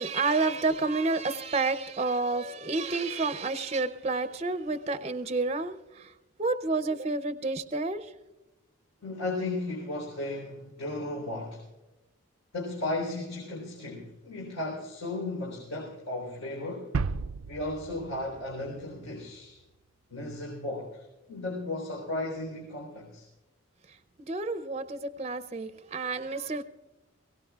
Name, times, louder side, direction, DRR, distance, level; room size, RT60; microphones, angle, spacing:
voice 1, 0.0-6.1 6.4-8.1 24.2-26.6, right 3 dB, 30° right, 0.5 m, -30 dB
voice 2, 9.0-11.6 12.5-16.9 17.5-19.6 20.1-23.3, left 2 dB, 85° left, 3.9 m, -35 dB
sound 1, 16.9-19.6, right 4 dB, 85° right, 0.4 m, -35 dB
22.5 x 17.5 x 2.4 m
head